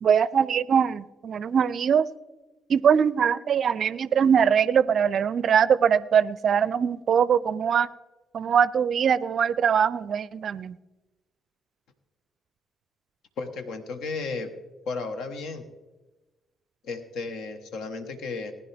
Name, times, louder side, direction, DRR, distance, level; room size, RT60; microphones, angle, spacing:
voice 1, 0.0-2.1 2.7-7.9 8.3-10.8, right 7 dB, 55° right, 19 dB, 0.4 m, -22 dB
voice 2, 13.4-14.5 14.9-15.6 16.8-18.5, left 4 dB, 65° left, 8 dB, 1.2 m, -33 dB
19.5 x 10.0 x 3.4 m, 1.2 s
figure-of-eight pair, 40°, 0 cm